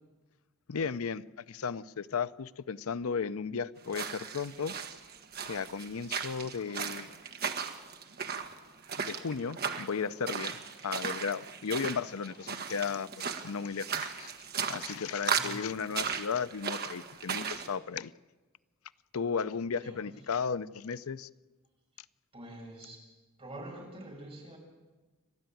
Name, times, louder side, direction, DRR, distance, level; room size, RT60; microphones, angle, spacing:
voice 1, 0.7-4.7 5.4-7.1 9.0-10.5 10.8-13.1 13.4-14.3 14.6-18.1 19.1-21.3, left 6 dB, 80° left, 15 dB, 0.6 m, -35 dB
sound 1, 3.8-17.7, right 6 dB, 50° right, 1.5 m, -37 dB
voice 2, 15.2-15.8 19.3-19.5 19.8-20.1 22.3-23.0 23.4-24.6, right 1 dB, 30° right, 0 dB, 6.8 m, -46 dB
29.0 x 12.5 x 9.2 m, 1.3 s
head